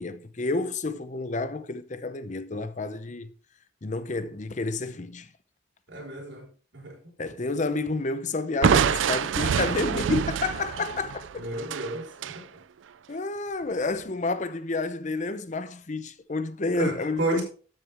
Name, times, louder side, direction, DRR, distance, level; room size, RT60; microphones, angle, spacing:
voice 1, 0.0-3.3 3.8-5.3 7.2-11.4 13.1-17.4, left 3 dB, 40° left, 0.7 m, -30 dB
voice 2, 5.9-6.5 6.7-7.0 11.4-12.1 12.3-12.5 16.7-17.4, right 1 dB, 70° right, 4.6 m, -31 dB
Crushing, 8.6-12.4, right 7 dB, 85° right, 0.4 m, -26 dB
12.5 x 7.7 x 3.5 m
head